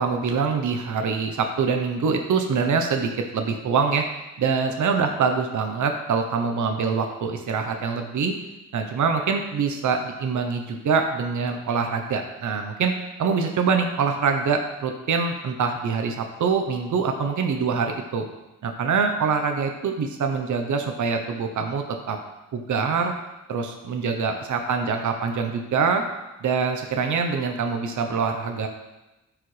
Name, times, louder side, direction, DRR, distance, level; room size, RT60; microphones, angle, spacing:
voice 1, 0.0-4.0 4.4-8.3 8.7-12.9 13.2-18.2 18.6-22.2 22.5-23.1 23.5-26.0 26.4-28.7, right 5 dB, 75° right, 4 dB, 0.8 m, -24 dB
12.0 x 4.9 x 3.2 m, 1.0 s
wide cardioid pair, 100°, 30 cm